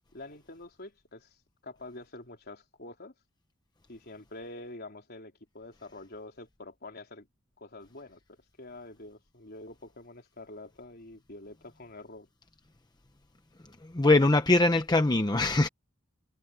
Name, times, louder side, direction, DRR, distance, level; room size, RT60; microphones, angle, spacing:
voice 1, 0.1-1.4 1.6-3.1 3.9-7.3 7.6-12.3, left 2 dB, 55° left, 4.0 m, -46 dB
voice 2, 13.9-15.7, left 2 dB, 20° left, 0.8 m, -22 dB
head